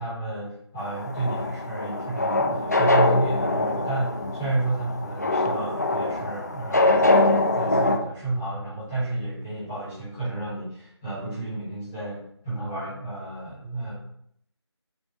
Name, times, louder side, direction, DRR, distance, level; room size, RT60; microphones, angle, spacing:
voice 1, 0.0-13.9, right 2 dB, 5° left, -11 dB, 0.7 m, -31 dB
sound 1, 0.8-8.0, left 2 dB, 35° left, 0.4 m, -23 dB
5.3 x 2.3 x 4.3 m, 0.69 s
figure-of-eight pair, 165°, 15 cm